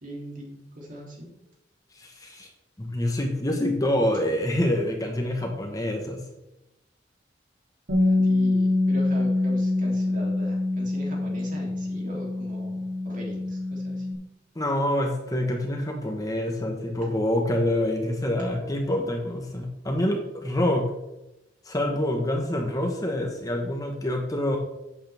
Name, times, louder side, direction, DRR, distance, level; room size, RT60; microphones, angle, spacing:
voice 1, 0.0-1.3 8.0-14.1, equal, 45° right, -2 dB, 3.1 m, -40 dB
voice 2, 2.0-2.5 2.8-6.2 14.5-20.9 21.6-24.6, left 1 dB, 20° left, 2 dB, 1.3 m, -26 dB
Bass guitar, 7.9-14.1, left 2 dB, 80° right, 3.1 m, -25 dB
11.5 x 8.7 x 3.5 m, 0.93 s
head